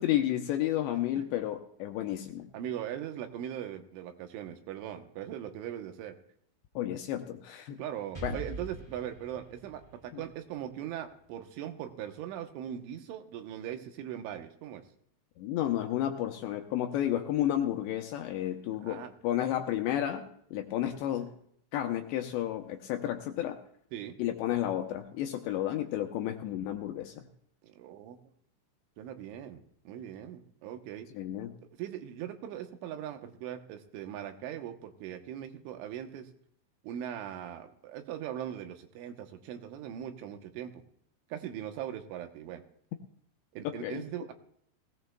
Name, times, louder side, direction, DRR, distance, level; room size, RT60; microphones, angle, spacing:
voice 1, 0.0-2.5 6.8-7.8 8.2-8.4 10.1-10.2 15.4-21.3 21.7-23.6 24.2-27.3 31.1-31.5 43.6-44.0, left 12 dB, 80° left, 4 dB, 2.7 m, -32 dB
voice 2, 2.5-6.1 7.8-14.8 18.8-19.1 23.9-24.1 27.6-28.2 29.0-31.1 31.8-36.3 36.8-40.8 41.3-42.6 43.5-44.3, right 10 dB, 80° right, 6 dB, 3.3 m, -40 dB
Explosion, 8.1-11.9, right 3 dB, 15° right, 1.3 m, -44 dB
20.0 x 17.0 x 2.2 m, 0.67 s
omnidirectional pair, 5.6 m